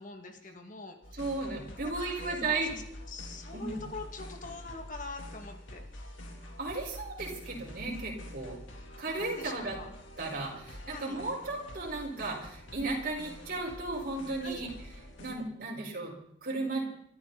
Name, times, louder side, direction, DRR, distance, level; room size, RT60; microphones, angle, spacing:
voice 1, 0.0-1.2 1.8-2.7 3.1-6.2 9.0-9.9 10.9-11.2 14.4-14.6, left 3 dB, 40° left, 4 dB, 2.3 m, -44 dB
sound 1, 1.0-15.3, left 1 dB, 80° left, 3.3 m, -47 dB
voice 2, 1.1-2.7 3.5-3.8 6.4-8.6 9.0-9.8 10.2-14.7 15.2-16.2 16.4-16.8, right 3 dB, 50° right, -2 dB, 5.2 m, -35 dB
25.0 x 13.5 x 4.2 m, 0.69 s
head